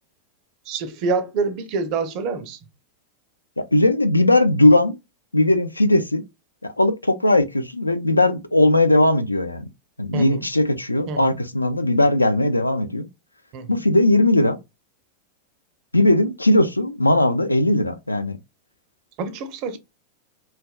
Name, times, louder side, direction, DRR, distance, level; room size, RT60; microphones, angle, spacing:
voice 1, 0.7-2.6 10.1-10.4 11.1-11.4 13.5-13.8 19.2-19.8, right 4 dB, 40° right, 0.5 m, -26 dB
voice 2, 3.6-5.0 5.3-6.2 6.6-9.6 10.0-13.1 13.7-14.6 15.9-18.4, left 1 dB, 85° left, 0.3 m, -18 dB
3.2 x 2.1 x 2.2 m
figure-of-eight pair, 90°, 0 cm